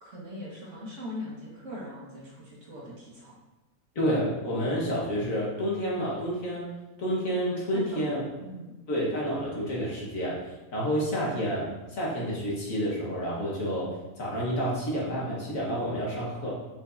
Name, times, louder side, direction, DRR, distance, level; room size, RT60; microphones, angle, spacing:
voice 1, 0.0-3.4 7.7-8.8, left 1 dB, 55° right, -5 dB, 2.1 m, -41 dB
voice 2, 4.0-6.7 7.0-8.2 8.9-10.4 10.7-16.5, equal, 60° left, -5 dB, 2.0 m, -29 dB
7.3 x 5.7 x 2.8 m, 1.1 s
omnidirectional pair, 1.6 m